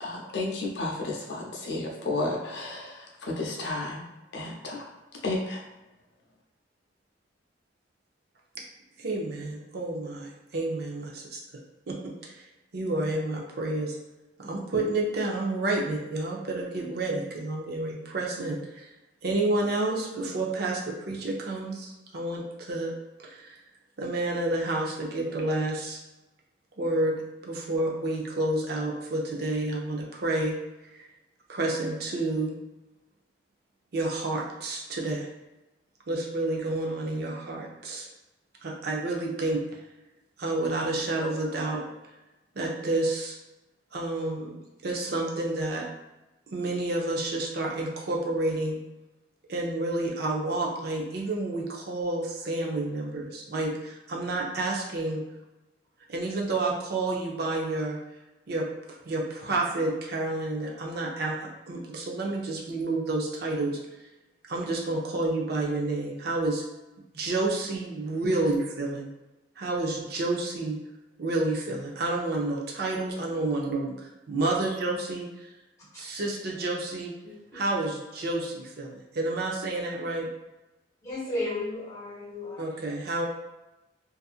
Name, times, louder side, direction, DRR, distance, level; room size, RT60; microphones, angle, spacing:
voice 1, 0.0-4.0 4.3-4.9 5.2-5.6, left 2 dB, 65° left, -1 dB, 0.6 m, -32 dB
voice 2, 9.0-11.4 11.9-12.0 12.2-12.4 12.7-14.0 14.4-18.9 19.2-22.9 23.2-23.6 24.0-26.0 26.8-30.5 31.0-31.1 31.5-32.5 33.9-35.3 36.1-38.1 38.6-39.6 40.4-41.8 42.6-43.4 43.9-44.5 44.8-45.8 46.5-48.8 49.5-55.2 56.1-58.0 58.5-58.6 59.1-61.4 61.7-63.8 64.5-66.6 67.1-69.1 69.6-70.8 71.2-75.5 76.0-77.1 77.5-80.3 82.6-83.3, right 2 dB, 55° right, -1 dB, 0.5 m, -29 dB
voice 3, 77.2-77.6 81.0-82.7, left 2 dB, 15° left, -6 dB, 0.8 m, -34 dB
2.7 x 2.4 x 2.4 m, 1.0 s
head